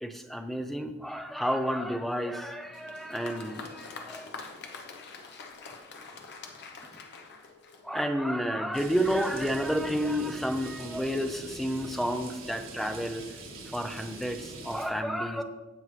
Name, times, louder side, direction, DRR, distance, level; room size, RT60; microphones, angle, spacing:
voice 1, 0.0-4.3 7.8-13.2 13.7-15.4, equal, ahead, 7 dB, 0.5 m, -30 dB
Applause, 2.6-8.2, left 4 dB, 55° left, 0.9 m, -45 dB
sound 1, 8.7-14.9, right 2 dB, 80° right, 1.7 m, -43 dB
15.5 x 5.4 x 3.2 m, 1.2 s
head